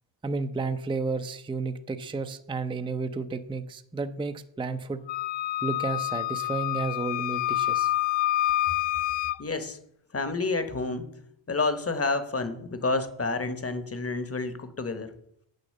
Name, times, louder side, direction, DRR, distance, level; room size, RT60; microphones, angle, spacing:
voice 1, 0.2-5.0 5.6-7.9, right 3 dB, 10° right, 10 dB, 0.5 m, -32 dB
Wind instrument woodwind instrument, 5.1-9.4, left 15 dB, 65° left, 0.5 m, -27 dB
voice 2, 9.4-9.8 10.1-11.1 11.5-15.1, left 3 dB, 30° left, 11 dB, 1.0 m, -29 dB
7.7 x 6.7 x 6.5 m, 0.73 s
cardioid pair, 90°, 49 cm